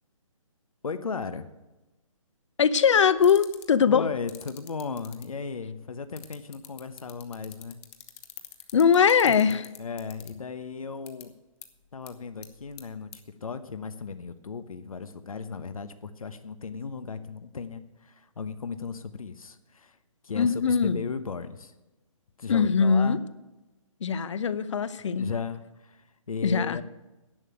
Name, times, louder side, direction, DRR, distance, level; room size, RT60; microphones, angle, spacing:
voice 1, 0.8-1.5 3.9-7.8 9.5-11.3 11.9-20.0 20.2-21.7 22.4-23.3 25.0-26.8, left 5 dB, 90° left, 10 dB, 1.0 m, -36 dB
voice 2, 2.6-4.1 8.7-9.6 20.4-21.0 22.5-23.2 24.0-25.3 26.4-26.8, left 6 dB, 60° left, 15 dB, 0.8 m, -21 dB
sound 1, 3.2-3.7 4.3-5.2 6.2-10.3 11.1-11.2 11.6-11.7 12.1-12.2 12.4-12.8 13.1-13.2, left 14 dB, 25° left, 1.0 m, -43 dB
11.0 x 6.8 x 9.3 m, 1.0 s
hypercardioid pair, 160°, 17 cm